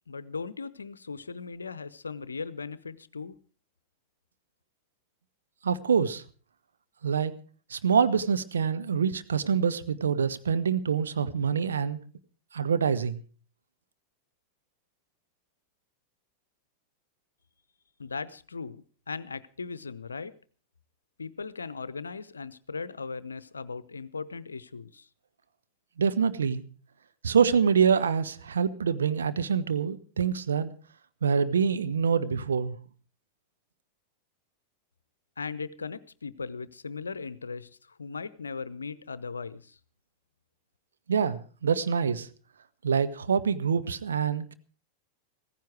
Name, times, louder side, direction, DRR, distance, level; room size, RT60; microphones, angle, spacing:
voice 1, 0.1-3.4 18.0-18.8 19.1-20.3 21.2-25.1 35.4-37.7 38.0-39.8, left 4 dB, 75° left, 18 dB, 0.7 m, -38 dB
voice 2, 5.6-6.2 7.0-7.3 7.7-12.0 12.5-13.2 26.0-26.6 27.2-30.7 31.2-32.8 41.1-42.3 42.8-44.5, right 6 dB, 70° right, 12 dB, 1.0 m, -25 dB
16.0 x 15.0 x 4.7 m, 0.41 s
figure-of-eight pair, 90°, 0 cm